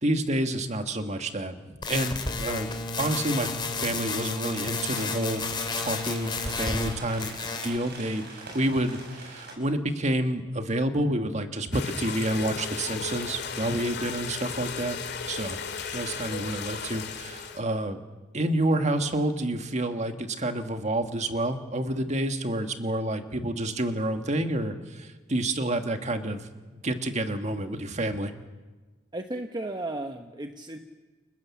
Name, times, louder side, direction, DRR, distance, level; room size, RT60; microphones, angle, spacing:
voice 1, 0.0-2.7 3.0-3.5 3.8-5.4 5.8-7.4 7.6-15.0 15.3-15.6 15.9-18.0 18.3-28.3, right 1 dB, 40° right, 7 dB, 1.7 m, -29 dB
sound 1, 1.8-6.9 7.2-7.8, left 3 dB, 25° left, 2.6 m, -31 dB
sound 2, 4.4-9.5, right 2 dB, 60° right, 7.1 m, -44 dB
sound 3, 11.7-17.6, left 5 dB, 65° left, 2.3 m, -35 dB
voice 2, 29.1-30.8, right 2 dB, 25° right, 5 dB, 1.1 m, -34 dB
29.5 x 20.0 x 7.3 m, 1.3 s
head